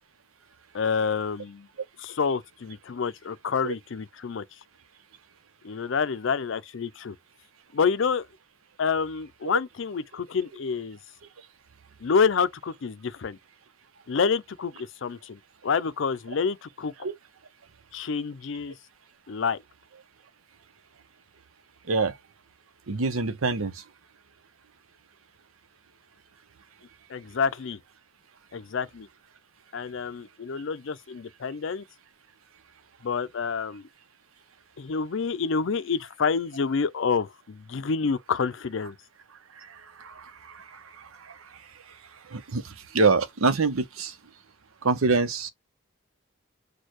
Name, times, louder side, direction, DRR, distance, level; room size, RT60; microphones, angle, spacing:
voice 1, 0.7-1.7 2.0-4.4 5.6-7.1 7.7-8.3 8.8-11.0 12.0-13.4 14.1-16.9 17.9-18.7 19.3-19.6 27.1-27.8 28.5-29.1 29.7-31.8 33.0-33.9 34.8-38.9, left 5 dB, 65° left, 0.4 m, -28 dB
voice 2, 22.9-23.8 40.0-41.4 42.3-44.1 44.8-45.5, right 4 dB, 90° right, 0.8 m, -26 dB
6.4 x 2.3 x 3.0 m
head